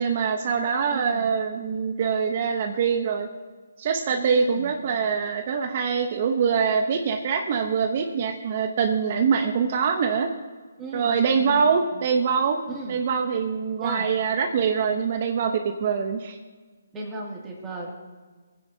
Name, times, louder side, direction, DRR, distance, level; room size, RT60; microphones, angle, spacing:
voice 1, 0.0-3.3 3.8-10.3 10.9-12.6 12.9-15.5 15.8-16.4, right 6 dB, 40° right, 5 dB, 0.8 m, -24 dB
voice 2, 0.9-1.3 4.1-4.7 10.8-11.7 11.9-12.0 12.7-13.0 13.8-14.1 16.9-17.9, right 2 dB, 15° right, -3 dB, 2.4 m, -35 dB
21.0 x 9.5 x 2.8 m, 1.4 s
hypercardioid pair, 155°, 0 cm